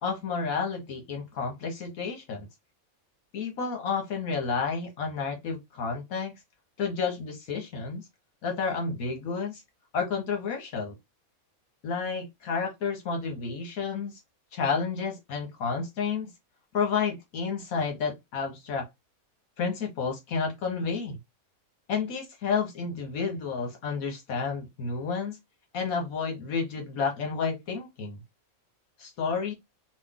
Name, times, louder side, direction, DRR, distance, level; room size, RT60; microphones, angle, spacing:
voice 1, 0.0-2.5 3.3-6.3 6.8-8.1 8.4-9.6 9.9-11.0 11.8-14.2 14.5-16.3 16.7-18.9 19.6-21.2 21.9-25.4 25.7-28.2 29.0-29.5, left 5 dB, 75° left, 1.4 m, -30 dB
3.1 x 2.4 x 3.6 m
omnidirectional pair, 1.5 m